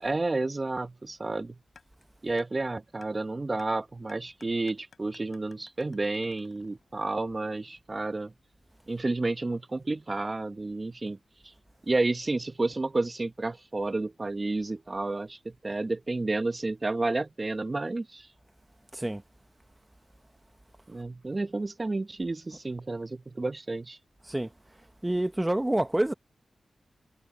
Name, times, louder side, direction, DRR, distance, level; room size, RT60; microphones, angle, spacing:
voice 1, 0.0-1.5 2.2-8.3 8.9-11.2 11.4-11.5 11.9-18.3 20.9-24.0, right 2 dB, 40° right, 1.0 m, -31 dB
sound 1, 1.8-1.9 2.4-2.5 3.0-3.1 3.6-3.7 4.1-7.0, left 5 dB, 75° left, 5.1 m, -55 dB
voice 2, 25.0-26.1, right 1 dB, 20° right, 1.3 m, -27 dB
cardioid pair, 50°, 0 cm